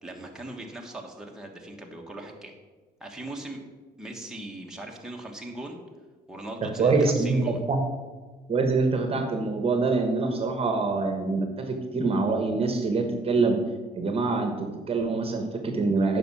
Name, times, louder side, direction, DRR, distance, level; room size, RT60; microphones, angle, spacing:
voice 1, 0.0-2.5 3.0-3.6 4.0-5.8 6.3-7.6, right 1 dB, 5° right, -1 dB, 1.4 m, -39 dB
voice 2, 6.6-7.8 8.5-13.6 13.9-16.2, right 3 dB, 35° right, 5 dB, 1.2 m, -25 dB
9.1 x 5.5 x 6.2 m, 1.3 s
cardioid pair, 110°, 17 cm